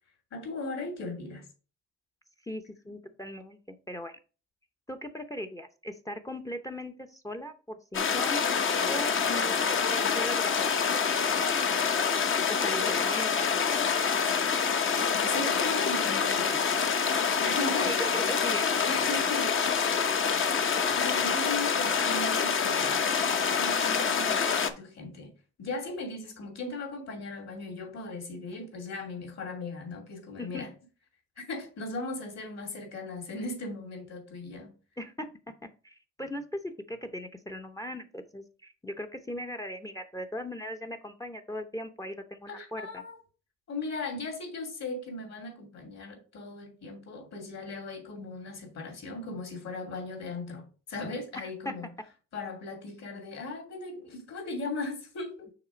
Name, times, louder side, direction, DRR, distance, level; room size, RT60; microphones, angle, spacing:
voice 1, 0.3-1.4 9.0-9.2 15.1-16.6 17.4-18.2 18.9-19.5 20.7-23.0 23.4-25.3 25.6-30.7 31.5-34.7 42.5-43.2 43.7-51.9 52.3-55.5, left 2 dB, 60° left, 2.8 m, -38 dB
voice 2, 2.4-4.2 4.9-8.5 8.9-11.1 12.5-13.5 17.0-17.5 17.8-18.7 19.8-19.9 30.4-30.7 35.0-35.3 35.8-43.0 51.4-51.8, equal, 10° left, 0.6 m, -39 dB
sound 1, 7.9-24.7, left 6 dB, 40° left, 0.8 m, -26 dB
5.9 x 3.6 x 4.9 m
cardioid pair, 90°, 30 cm